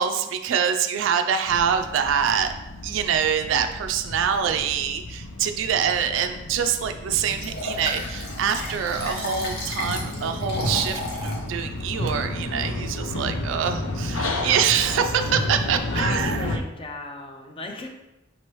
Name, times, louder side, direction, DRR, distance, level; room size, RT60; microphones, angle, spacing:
voice 1, 0.0-2.5 2.8-16.6, right 7 dB, 70° right, 7 dB, 0.3 m, -25 dB
sound 1, 1.4-16.6, left 1 dB, 80° left, 0.5 m, -32 dB
Liquid, 7.3-11.4 11.9-12.0, left 1 dB, 60° left, 1.1 m, -33 dB
voice 2, 15.9-17.9, left 2 dB, 30° left, 3 dB, 0.5 m, -35 dB
5.2 x 3.0 x 3.1 m, 0.96 s
head